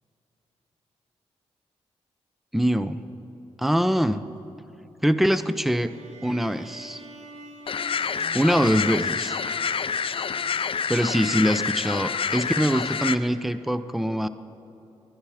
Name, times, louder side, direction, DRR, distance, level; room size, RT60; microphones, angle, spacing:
voice 1, 2.5-3.0 3.6-4.2 5.0-5.9 6.2-7.0 8.3-9.4 10.9-14.3, equal, ahead, 12 dB, 0.7 m, -23 dB
sound 1, 5.9-11.1, right 3 dB, 70° right, 1.4 m, -45 dB
sound 2, 7.7-13.2, left 6 dB, 50° left, 0.6 m, -28 dB
21.5 x 10.5 x 5.7 m, 3.0 s
cardioid pair, 55°, 12 cm